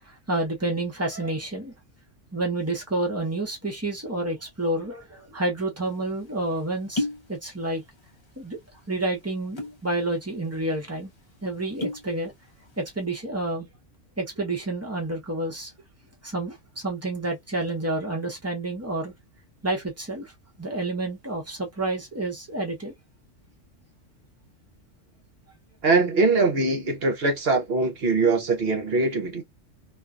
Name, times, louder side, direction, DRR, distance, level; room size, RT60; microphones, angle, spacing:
voice 1, 0.3-1.7 2.3-7.8 8.4-8.6 8.9-11.1 11.4-12.3 12.8-13.7 14.2-15.7 16.2-19.1 19.6-20.3 20.6-22.9, right 2 dB, 15° right, 0.7 m, -29 dB
sound 1, 5.9-6.0 6.7-7.3 7.6-8.2 8.5-8.7 9.4-9.8 10.3-10.4 10.7-10.9 11.5-12.1 12.5-12.9, left 1 dB, 30° left, 0.6 m, -31 dB
voice 2, 25.8-29.4, right 3 dB, 55° right, 0.9 m, -22 dB
2.5 x 2.2 x 2.4 m
omnidirectional pair, 1.3 m